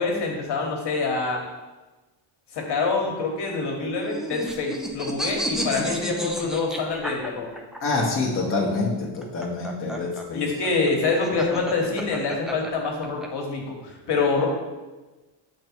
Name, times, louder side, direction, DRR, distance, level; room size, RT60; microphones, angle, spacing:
voice 1, 0.0-1.4 2.5-7.5 10.3-14.5, left 4 dB, 60° left, 0 dB, 1.3 m, -26 dB
sound 1, 3.8-7.8 9.0-13.3, equal, ahead, 0.4 m, -32 dB
voice 2, 7.8-10.5, left 3 dB, 25° left, -3 dB, 0.9 m, -26 dB
6.6 x 3.3 x 4.4 m, 1.2 s
cardioid pair, 130°, 47 cm